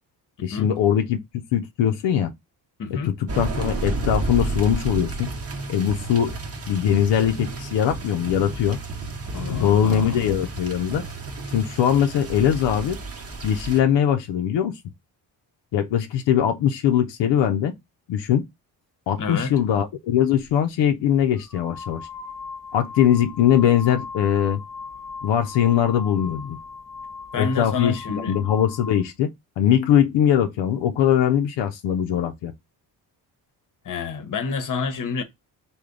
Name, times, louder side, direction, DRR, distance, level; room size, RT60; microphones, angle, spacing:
voice 1, 0.4-1.2 1.5-2.3 2.9-5.3 5.7-6.3 6.7-8.8 9.5-11.0 11.5-13.0 13.4-14.8 15.7-17.7 18.1-18.4 19.1-22.1 22.7-24.6 25.2-26.6 27.4-29.3 29.6-32.5, left 9 dB, 80° left, 0.6 m, -21 dB
voice 2, 2.8-3.1 9.3-10.4 19.2-19.5 27.3-28.3 33.9-35.2, left 5 dB, 45° left, 0.9 m, -29 dB
sound 1, 3.3-13.8, right 3 dB, 35° right, 0.9 m, -31 dB
sound 2, 20.4-20.5 21.4-29.1, left 5 dB, ahead, 0.6 m, -38 dB
3.3 x 2.2 x 3.7 m
cardioid pair, 65°, 43 cm